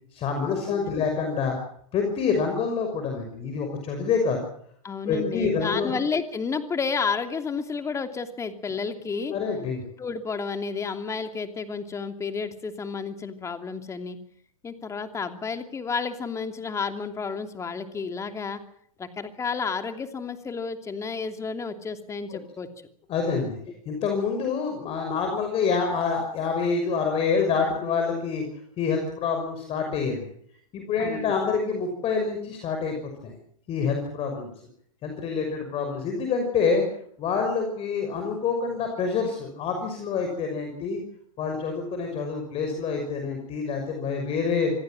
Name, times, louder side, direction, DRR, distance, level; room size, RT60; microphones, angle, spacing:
voice 1, 0.1-1.6 1.9-4.4 5.1-5.9 9.3-9.8 23.1-23.6 23.9-28.4 28.8-30.3 30.7-33.3 33.7-34.5 35.0-36.9 37.2-41.0 41.4-44.7, left 5 dB, 35° left, 4 dB, 5.9 m, -27 dB
voice 2, 0.6-1.1 4.8-9.3 10.0-14.2 14.6-18.6 19.0-22.7 31.0-31.3, left 5 dB, 15° left, 8 dB, 2.9 m, -31 dB
26.5 x 17.5 x 7.6 m, 0.65 s
hypercardioid pair, 120°, 18 cm